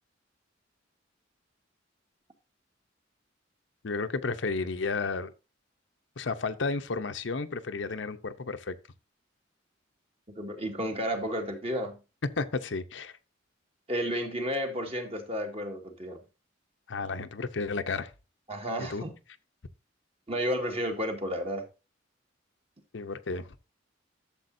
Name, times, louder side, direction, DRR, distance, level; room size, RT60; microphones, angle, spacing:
voice 1, 3.8-5.3 6.2-8.7 12.4-13.1 16.9-18.1 18.8-19.0 22.9-23.6, left 4 dB, 65° left, 0.7 m, -32 dB
voice 2, 10.4-12.0 13.9-16.2 18.5-19.1 20.3-21.6, equal, 30° right, 1.9 m, -32 dB
12.0 x 7.1 x 2.7 m
head